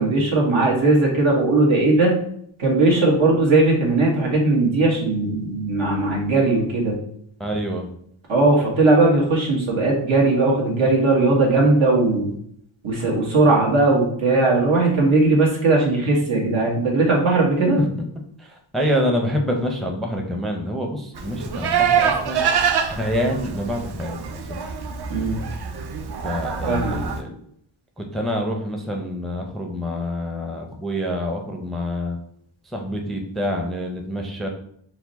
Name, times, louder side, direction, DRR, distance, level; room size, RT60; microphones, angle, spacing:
voice 1, 0.0-2.2 2.6-7.0 8.3-12.3 12.8-17.8 25.1-25.4 26.7-27.0, right 2 dB, 80° right, -2 dB, 1.4 m, -18 dB
voice 2, 7.4-7.9 18.4-22.4 22.9-24.2 26.2-27.4 28.0-32.2 32.7-34.5, equal, ahead, 2 dB, 0.5 m, -26 dB
Livestock farm animals working animals, 21.1-27.2, right 7 dB, 55° right, 0.6 m, -25 dB
4.6 x 2.2 x 4.0 m, 0.68 s
wide cardioid pair, 100°, 46 cm